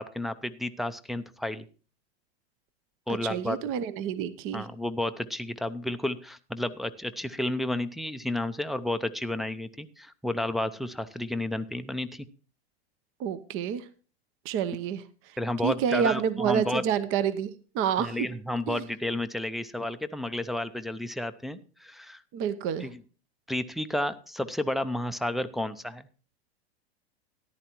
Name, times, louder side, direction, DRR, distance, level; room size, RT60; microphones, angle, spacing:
voice 1, 0.0-1.6 3.1-3.6 4.5-12.3 15.4-16.8 18.0-22.2 22.8-23.0 23.5-26.1, left 1 dB, ahead, 8 dB, 0.5 m, -31 dB
voice 2, 3.2-4.7 13.2-13.8 14.4-15.0 15.6-18.3 18.7-18.8 22.3-22.9, right 8 dB, 40° right, 14 dB, 0.8 m, -28 dB
13.5 x 11.0 x 3.0 m, 0.36 s
hypercardioid pair, 115°, 31 cm